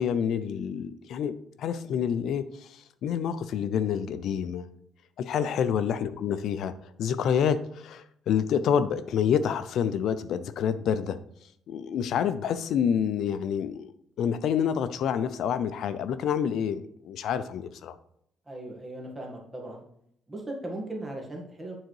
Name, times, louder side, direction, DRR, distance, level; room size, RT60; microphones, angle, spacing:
voice 1, 0.0-4.7 5.2-11.2 11.7-13.9 14.2-18.0, left 8 dB, 65° left, 13 dB, 0.5 m, -28 dB
voice 2, 18.5-19.8 20.3-21.8, right 1 dB, 15° right, -1 dB, 1.9 m, -38 dB
9.1 x 3.9 x 4.7 m, 0.72 s
cardioid pair, 115°, 0 cm